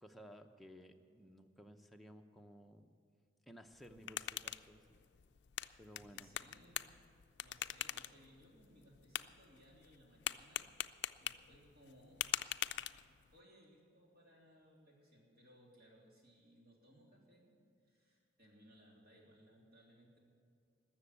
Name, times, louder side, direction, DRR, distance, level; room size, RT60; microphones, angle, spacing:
voice 1, 0.0-2.8 3.5-5.0 5.8-6.3, equal, ahead, 3 dB, 0.7 m, -57 dB
sound 1, 3.7-13.4, left 12 dB, 65° left, 0.4 m, -45 dB
voice 2, 5.9-7.0 7.4-17.6 17.8-20.2, equal, 55° right, -3 dB, 3.4 m, -65 dB
20.0 x 7.0 x 8.4 m, 2.3 s
head